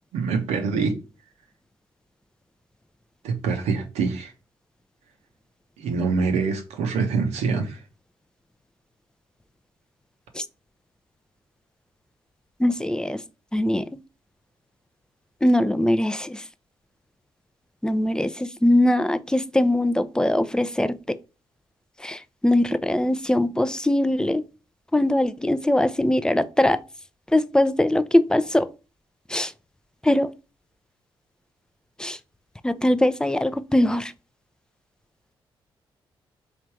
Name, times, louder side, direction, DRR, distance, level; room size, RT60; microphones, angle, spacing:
voice 1, 0.1-1.0 3.2-4.3 5.8-7.8, right 5 dB, 70° right, 0.7 m, -25 dB
voice 2, 12.6-13.2 13.5-13.8 15.4-16.4 17.8-20.9 22.0-24.4 24.9-26.8 27.3-28.7 29.3-29.5 30.0-30.3 32.0-32.2 32.6-34.1, left 1 dB, 5° left, 0.4 m, -21 dB
3.2 x 2.5 x 4.5 m
hypercardioid pair, 40°, 12 cm